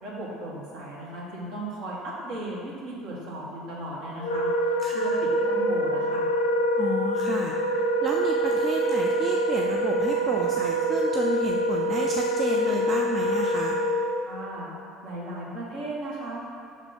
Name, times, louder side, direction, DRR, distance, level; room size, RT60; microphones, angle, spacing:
voice 1, 0.0-6.3 14.3-14.7 15.0-16.5, right 1 dB, 60° right, -5 dB, 1.4 m, -36 dB
Wind instrument woodwind instrument, 4.2-14.3, equal, 85° left, 0.4 m, -25 dB
voice 2, 4.8-5.2 6.8-7.6 8.0-13.8, right 4 dB, 40° right, 0 dB, 0.4 m, -31 dB
5.4 x 3.6 x 5.1 m, 2.5 s
figure-of-eight pair, 65°, 0 cm